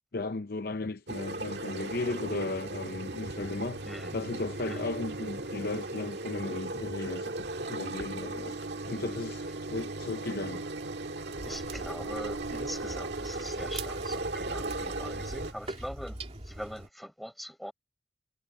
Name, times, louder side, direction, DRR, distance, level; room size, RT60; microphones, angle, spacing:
voice 1, 0.1-3.8 4.1-8.6 8.9-9.4 9.7-10.6, left 3 dB, 50° left, 0.6 m, -35 dB
sound 1, 1.1-15.5, right 2 dB, 60° right, 1.8 m, -37 dB
voice 2, 3.8-4.2 4.7-4.9 11.5-17.7, equal, ahead, 6.1 m, -42 dB
sound 2, 11.4-16.9, right 2 dB, 30° right, 2.3 m, -43 dB
head